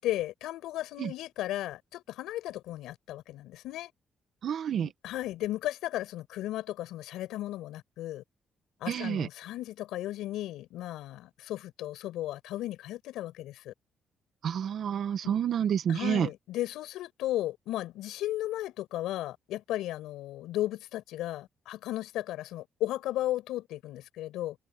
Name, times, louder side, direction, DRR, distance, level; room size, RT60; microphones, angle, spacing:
voice 1, 0.0-3.9 4.8-8.2 8.8-13.7 15.2-15.3 15.9-24.6, left 14 dB, 90° left, 6.8 m, -35 dB
voice 2, 4.4-4.9 8.9-9.3 14.4-16.3, right 8 dB, 65° right, 1.7 m, -29 dB
cardioid pair, 90°, 0 cm